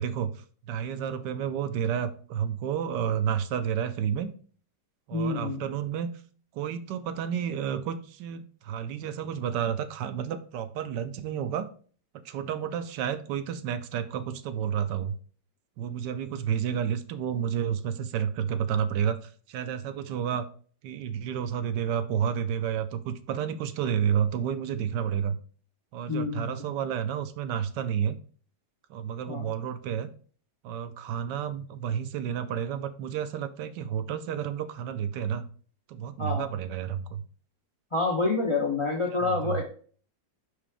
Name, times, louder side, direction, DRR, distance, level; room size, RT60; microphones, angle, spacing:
voice 1, 0.0-4.3 5.1-6.1 6.5-11.7 12.2-15.1 15.8-20.5 20.8-25.4 25.9-28.2 28.9-30.1 30.6-35.4 35.9-37.2 39.2-39.6, right 8 dB, 75° right, 11 dB, 1.2 m, -30 dB
voice 2, 5.1-5.7 26.1-26.5 29.3-29.5 36.2-36.5 37.9-39.6, left 3 dB, 45° left, 1 dB, 0.4 m, -28 dB
5.5 x 5.0 x 3.4 m, 0.43 s
omnidirectional pair, 2.0 m